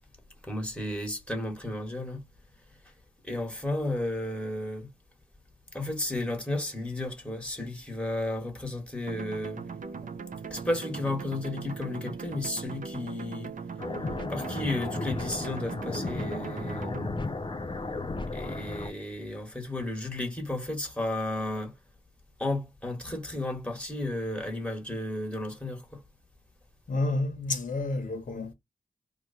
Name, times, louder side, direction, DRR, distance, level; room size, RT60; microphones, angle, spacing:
voice 1, 0.4-2.2 3.2-4.9 5.7-9.6 10.5-13.5 14.3-17.0 18.3-21.7 22.4-26.0, left 1 dB, 5° left, 1.5 m, -33 dB
sound 1, 9.1-17.1, right 5 dB, 65° right, 0.6 m, -39 dB
sound 2, 13.8-18.9, left 3 dB, 35° left, 0.6 m, -34 dB
voice 2, 26.9-28.5, left 2 dB, 65° left, 1.1 m, -30 dB
3.0 x 2.4 x 4.1 m
cardioid pair, 70°, 15 cm